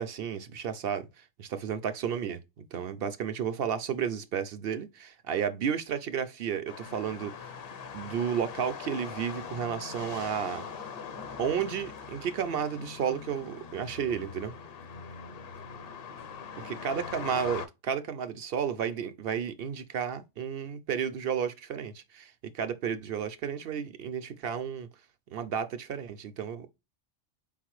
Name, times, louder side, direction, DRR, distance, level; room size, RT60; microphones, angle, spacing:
voice 1, 0.0-2.4 2.7-7.5 7.9-10.7 11.4-14.5 16.6-24.9 25.3-26.7, right 8 dB, 60° right, 0.7 m, -32 dB
sound 1, 6.7-17.7, left 6 dB, 60° left, 0.9 m, -42 dB
4.3 x 3.8 x 3.0 m
omnidirectional pair, 1.2 m